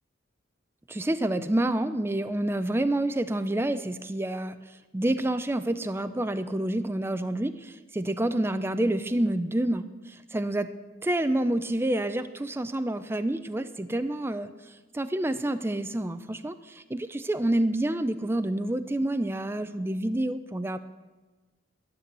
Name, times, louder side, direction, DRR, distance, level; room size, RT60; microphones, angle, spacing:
voice 1, 0.9-10.7 11.0-20.8, right 1 dB, 10° right, 11 dB, 0.4 m, -28 dB
12.5 x 7.7 x 8.1 m, 1.2 s
head